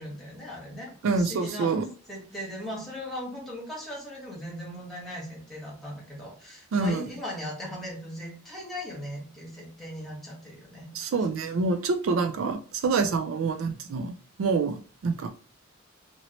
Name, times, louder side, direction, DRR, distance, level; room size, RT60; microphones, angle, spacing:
voice 1, 0.0-1.8 2.1-10.9, left 1 dB, ahead, -3 dB, 1.2 m, -38 dB
voice 2, 1.0-1.9 6.7-7.1 10.9-15.3, right 4 dB, 65° right, 6 dB, 0.3 m, -27 dB
2.9 x 2.8 x 2.9 m, 0.41 s
head